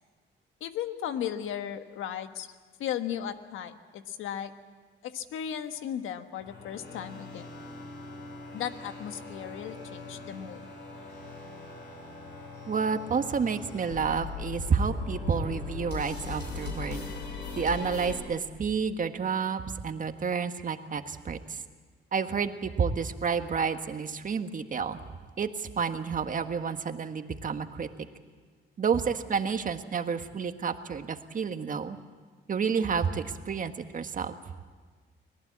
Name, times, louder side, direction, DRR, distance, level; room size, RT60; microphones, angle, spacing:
voice 1, 0.6-2.5 2.8-4.5 5.0-7.5 8.5-10.7, left 9 dB, 85° left, 8 dB, 1.4 m, -36 dB
sound 1, 6.4-18.2, left 4 dB, 60° left, 7.1 m, -40 dB
voice 2, 12.7-17.0 17.5-21.6 22.1-25.0 25.4-27.9 28.8-32.0 32.5-34.3, right 6 dB, 40° right, 8 dB, 1.6 m, -30 dB
24.5 x 18.5 x 8.6 m, 1.5 s
cardioid pair, 90°, 20 cm